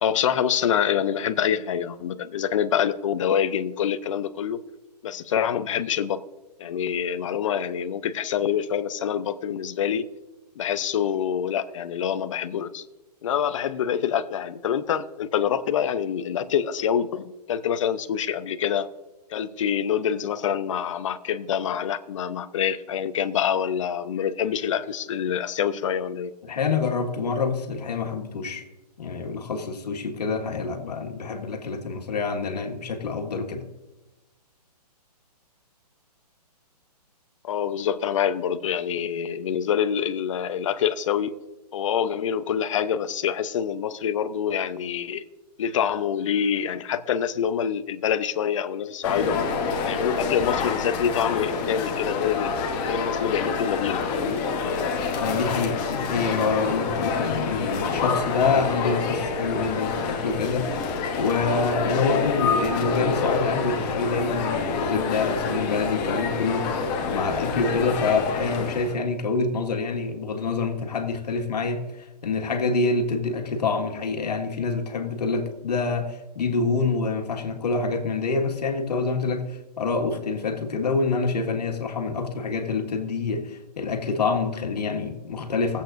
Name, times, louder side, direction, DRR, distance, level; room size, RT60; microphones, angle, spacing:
voice 1, 0.0-4.6 5.0-6.2 6.6-10.0 10.6-12.8 13.2-18.9 19.3-26.3 37.4-41.4 41.7-45.2 45.6-49.4 49.9-52.5 52.8-54.4, left 8 dB, 50° left, 0.7 m, -26 dB
voice 2, 26.4-28.6 29.0-33.6 55.2-85.8, left 4 dB, 75° left, 1.8 m, -26 dB
sound 1, 49.0-68.9, left 4 dB, 20° left, 1.0 m, -27 dB
19.5 x 8.1 x 2.6 m
hypercardioid pair, 155°, 21 cm